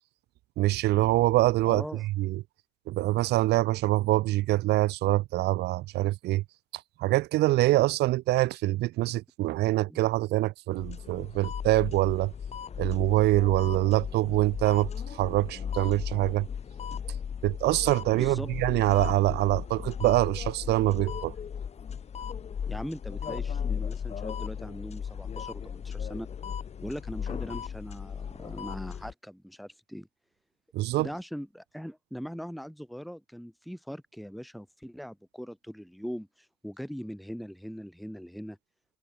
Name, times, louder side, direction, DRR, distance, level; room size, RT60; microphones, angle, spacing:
voice 1, 0.6-1.8 2.2-2.4 2.9-6.4 7.0-12.3 12.8-16.5 17.4-21.3 30.7-31.1, right 17 dB, 80° right, 1.2 m, -25 dB
voice 2, 1.7-2.0 9.9-10.0 16.9-17.0 18.1-18.5 22.7-26.3 26.8-30.1 31.0-38.6, equal, ahead, 1.9 m, -40 dB
sound 1, 10.7-29.1, left 7 dB, 40° left, 2.0 m, -36 dB
cardioid pair, 110°, 17 cm